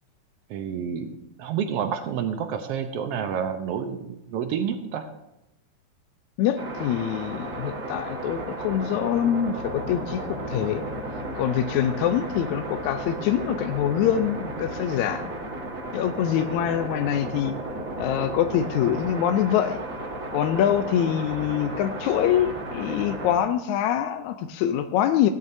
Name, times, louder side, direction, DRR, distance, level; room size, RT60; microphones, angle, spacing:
voice 1, 0.5-1.1 1.4-5.1, right 7 dB, 80° right, 7 dB, 1.3 m, -29 dB
voice 2, 6.4-10.8 11.3-15.3 15.9-17.5 18.0-19.8 20.3-25.3, left 10 dB, 80° left, 8 dB, 1.8 m, -24 dB
sound 1, 6.6-23.4, right 1 dB, 35° right, 1.4 m, -34 dB
17.0 x 10.5 x 2.7 m, 0.89 s
omnidirectional pair, 3.7 m